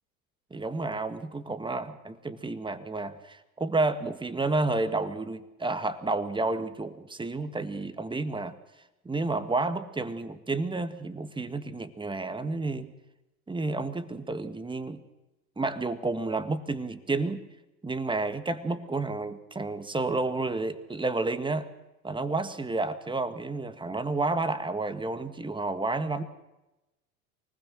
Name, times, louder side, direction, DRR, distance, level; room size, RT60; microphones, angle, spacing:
voice 1, 0.5-8.6 9.1-12.9 13.5-15.0 15.6-17.4 17.8-21.7 22.0-26.2, right 3 dB, 10° right, 10 dB, 1.8 m, -30 dB
24.5 x 20.0 x 6.4 m, 0.99 s
hypercardioid pair, 85°, 44 cm